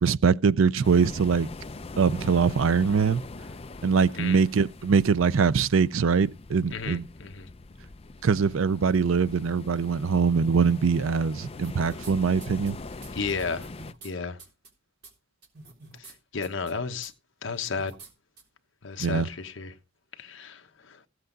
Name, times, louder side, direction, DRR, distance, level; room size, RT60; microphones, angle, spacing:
voice 1, 0.0-1.5 2.0-3.2 3.8-7.1 8.2-12.8 19.0-19.3, right 5 dB, 70° right, 0.5 m, -23 dB
sound 1, 0.8-13.9, left 3 dB, 30° left, 0.5 m, -42 dB
voice 2, 4.1-4.5 6.7-7.5 13.1-13.7 14.0-14.4 16.0-17.1 17.4-17.9 18.8-19.7 20.2-21.1, left 4 dB, 65° left, 1.1 m, -33 dB
sound 2, 11.5-12.1 12.4-14.1 14.4-14.7 15.0-15.1 15.4-16.1 16.4-16.7 17.0-17.1 17.5-18.1 18.4-18.5 19.0-19.1, right 3 dB, 50° right, 3.6 m, -48 dB
16.0 x 7.8 x 3.9 m
head